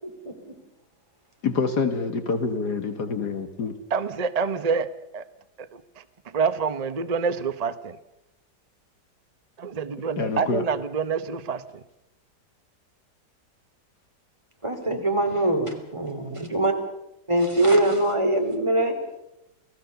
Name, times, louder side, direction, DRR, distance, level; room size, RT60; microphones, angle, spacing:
voice 1, 0.0-0.3 14.6-16.7 17.3-18.9, right 1 dB, 15° right, 3 dB, 3.2 m, -23 dB
voice 2, 1.4-3.8 10.2-10.6, left 4 dB, 65° left, 7 dB, 2.1 m, -26 dB
voice 3, 3.9-5.3 5.6-8.0 9.6-11.8 14.9-15.0, right 5 dB, 40° right, 11 dB, 0.5 m, -27 dB
28.5 x 17.5 x 6.9 m, 0.87 s
omnidirectional pair, 1.9 m